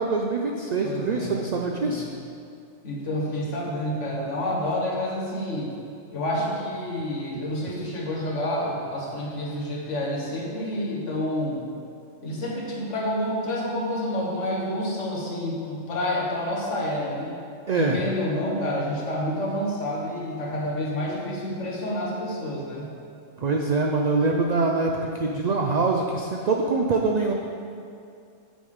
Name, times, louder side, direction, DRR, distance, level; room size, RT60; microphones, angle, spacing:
voice 1, 0.0-2.1 17.7-18.0 23.4-27.3, right 3 dB, 85° right, 1 dB, 0.3 m, -24 dB
voice 2, 0.8-1.4 1.7-2.0 2.8-5.7 6.1-11.7 12.2-17.4 17.8-22.9, left 1 dB, 70° left, -4 dB, 1.5 m, -29 dB
7.2 x 3.6 x 6.4 m, 2.5 s
omnidirectional pair, 1.3 m